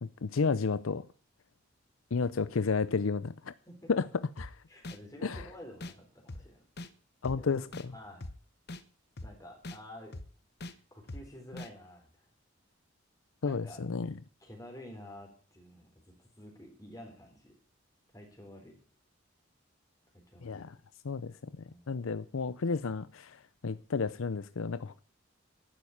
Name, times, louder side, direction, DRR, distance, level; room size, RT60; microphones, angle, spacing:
voice 1, 0.0-1.0 2.1-3.5 3.9-4.1 4.4-4.5 5.2-5.4 7.2-7.7 13.4-14.1 20.4-20.7 21.0-21.3 21.9-25.0, left 4 dB, 85° left, 0.6 m, -31 dB
voice 2, 3.7-4.1 4.7-6.6 7.4-7.6 7.9-8.3 9.2-10.1 10.7-12.3 13.4-13.8 14.4-17.5 18.1-18.7 20.3-20.7 21.7-21.9, left 1 dB, 15° left, 3.8 m, -50 dB
sound 1, 4.4-4.5 4.8-5.0 5.3-5.5 5.8-5.9 6.3-6.4 6.8-6.9 7.2-7.4 7.7-7.9 8.2-8.3 8.7-8.8 9.2-9.3 9.6-9.8 10.1-10.3 10.6-10.7 11.1-11.2 11.6-11.7, left 2 dB, 50° left, 0.9 m, -41 dB
11.5 x 9.3 x 9.9 m
head